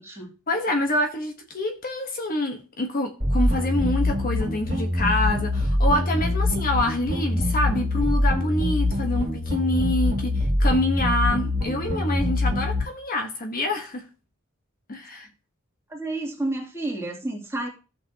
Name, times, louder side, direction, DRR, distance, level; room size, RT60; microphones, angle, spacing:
voice 1, 0.5-14.0 14.9-15.3, left 1 dB, 45° left, 1.2 m, -26 dB
sound 1, 3.2-12.8, left 1 dB, 45° right, 2.4 m, -24 dB
voice 2, 15.9-17.7, right 2 dB, 15° right, 2.6 m, -30 dB
15.5 x 5.9 x 2.8 m
head